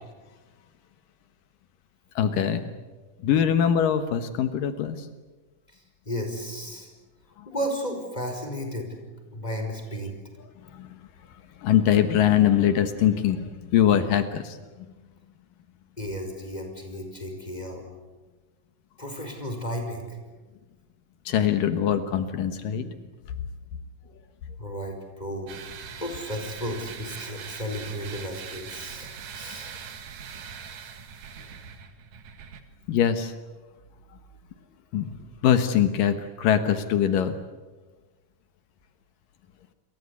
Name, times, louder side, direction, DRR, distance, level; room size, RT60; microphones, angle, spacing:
voice 1, 2.2-2.7 3.2-5.1 7.4-7.5 10.6-11.1 11.6-14.9 21.3-22.9 29.5-29.6 32.9-33.3 34.9-35.1 35.4-37.4, left 9 dB, 75° left, 9 dB, 2.9 m, -23 dB
voice 2, 6.0-6.9 7.4-8.9 9.3-10.1 16.0-17.8 19.0-20.2 24.6-25.6 25.9-30.0 30.3-30.4, equal, 10° left, 4 dB, 5.0 m, -34 dB
sound 1, 25.5-32.6, right 7 dB, 75° right, 3.6 m, -41 dB
29.5 x 23.0 x 8.4 m, 1.2 s
omnidirectional pair, 4.0 m